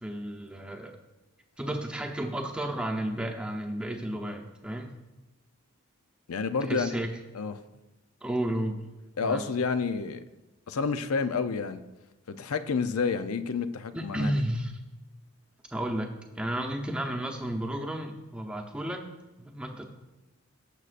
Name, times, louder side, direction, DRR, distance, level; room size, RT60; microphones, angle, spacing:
voice 1, 0.0-1.0 1.6-5.0 6.7-7.1 8.2-8.8 9.2-9.4 13.9-14.7 15.7-19.1 19.4-19.8, right 1 dB, 5° right, 0.8 m, -32 dB
voice 2, 6.3-6.9 7.3-7.5 9.2-10.2 10.7-11.8 12.3-14.3, left 5 dB, 85° left, 0.6 m, -29 dB
17.5 x 6.7 x 2.5 m
head